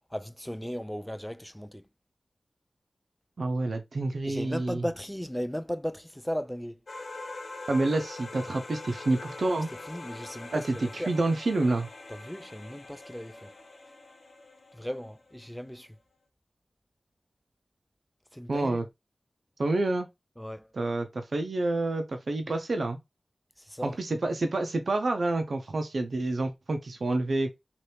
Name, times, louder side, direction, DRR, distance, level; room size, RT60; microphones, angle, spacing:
voice 1, 0.1-1.8 4.2-6.8 9.9-11.1 12.1-13.5 14.7-16.0 18.3-18.8 20.4-20.7 23.6-24.0, equal, 5° left, 0.4 m, -36 dB
voice 2, 3.4-4.8 7.7-9.7 10.5-10.6 10.9-11.9 18.5-18.8 19.6-20.1 20.7-23.0 23.8-27.5, right 2 dB, 75° right, 0.5 m, -28 dB
sound 1, 6.9-15.5, left 2 dB, 70° left, 1.3 m, -43 dB
2.8 x 2.5 x 3.3 m
cardioid pair, 45°, 0 cm